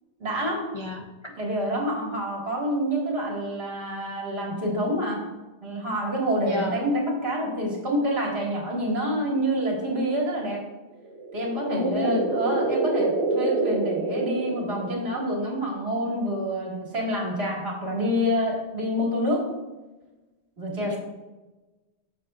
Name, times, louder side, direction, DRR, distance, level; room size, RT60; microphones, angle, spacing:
voice 1, 0.2-0.6 1.4-5.2 5.6-10.6 11.3-19.4 20.6-21.0, equal, 65° right, -2 dB, 2.0 m, -27 dB
voice 2, 0.7-1.1 6.4-6.8 11.7-12.3 20.8-21.0, left 3 dB, 45° left, 2 dB, 0.4 m, -29 dB
sound 1, 11.0-15.3, right 2 dB, 80° right, 1.3 m, -28 dB
9.1 x 6.3 x 2.4 m, 1.1 s
omnidirectional pair, 1.2 m